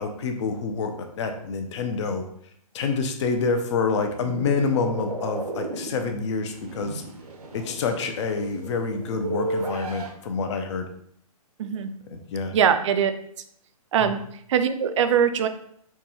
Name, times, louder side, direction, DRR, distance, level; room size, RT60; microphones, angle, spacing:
voice 1, 0.0-2.2 2.7-7.0 7.5-10.9 12.1-12.5, left 4 dB, 50° left, 6 dB, 0.6 m, -27 dB
sound 1, 4.0-10.1, right 2 dB, 80° right, 0.8 m, -34 dB
voice 2, 11.6-11.9 12.5-13.1 13.9-14.2 14.5-15.5, right 8 dB, 55° right, 9 dB, 0.4 m, -21 dB
4.5 x 2.3 x 2.7 m, 0.68 s
hypercardioid pair, 140°, 20 cm